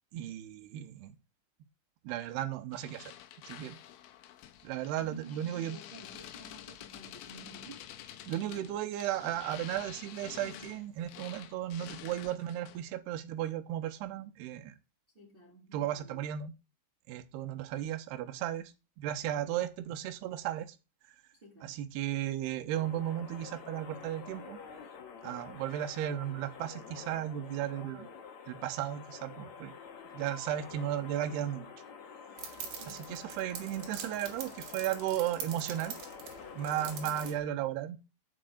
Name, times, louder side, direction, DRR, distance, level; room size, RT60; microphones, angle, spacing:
voice 1, 0.1-1.2 2.0-3.1 3.4-3.8 4.6-5.8 8.3-14.7 15.7-16.5 17.1-20.8 21.6-24.6 25.2-28.1 28.5-29.7 30.1-31.7 32.9-35.9 36.5-38.0, right 11 dB, 75° right, 2.5 m, -35 dB
sound 1, 2.7-12.9, left 12 dB, 85° left, 3.0 m, -49 dB
voice 2, 5.0-7.8 8.1-8.7 15.1-16.4 21.4-21.8 32.8-33.3, right 3 dB, 30° right, 1.0 m, -53 dB
sound 2, 22.7-37.4, left 6 dB, 65° left, 1.8 m, -48 dB
sound 3, 32.4-37.3, right 7 dB, 60° right, 3.0 m, -44 dB
6.8 x 6.5 x 7.8 m
omnidirectional pair, 5.6 m